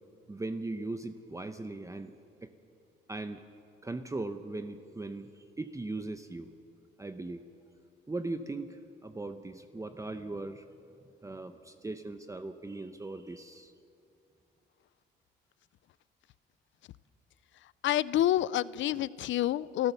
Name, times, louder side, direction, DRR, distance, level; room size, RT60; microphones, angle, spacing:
voice 1, 0.3-2.1 2.4-2.5 3.1-3.4 3.8-6.5 7.0-7.4 8.1-10.7 11.2-13.7, right 2 dB, 15° right, 8 dB, 0.8 m, -39 dB
voice 2, 17.8-19.9, left 13 dB, 75° left, 20 dB, 0.5 m, -28 dB
28.0 x 13.5 x 6.9 m, 2.6 s
cardioid pair, 90°, 20 cm